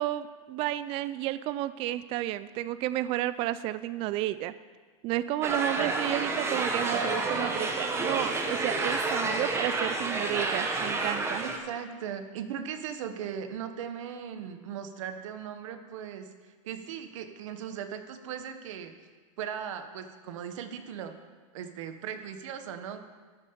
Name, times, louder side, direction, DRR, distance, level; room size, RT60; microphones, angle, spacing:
voice 1, 0.0-4.5 5.0-11.4, right 14 dB, 35° right, 15 dB, 0.3 m, -32 dB
sound 1, 5.4-11.6, right 3 dB, 15° right, 1.2 m, -29 dB
voice 2, 11.4-18.9 19.4-21.1 21.5-23.0, right 8 dB, 70° right, 8 dB, 1.1 m, -38 dB
12.5 x 5.7 x 6.7 m, 1.4 s
supercardioid pair, 135°, 17 cm